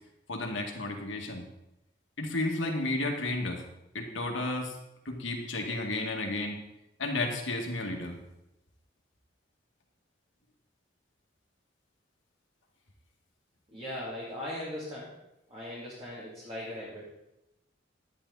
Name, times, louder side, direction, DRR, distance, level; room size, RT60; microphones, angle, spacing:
voice 1, 0.3-1.4 2.2-3.6 3.9-4.7 5.1-6.6 7.0-8.2, left 2 dB, 85° left, 1 dB, 2.1 m, -32 dB
voice 2, 13.7-15.2 15.5-17.4, left 1 dB, 30° right, -8 dB, 2.9 m, -39 dB
12.0 x 10.0 x 4.1 m, 0.89 s
head